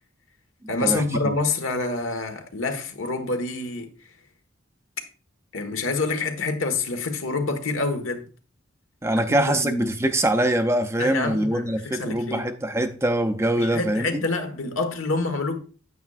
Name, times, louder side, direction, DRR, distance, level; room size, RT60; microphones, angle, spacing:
voice 1, 0.7-3.9 5.5-8.2 9.2-9.9 11.0-12.5 13.6-15.6, left 3 dB, 85° left, 1.4 m, -27 dB
voice 2, 9.0-14.3, right 1 dB, 15° right, 0.5 m, -23 dB
9.1 x 8.5 x 2.4 m
head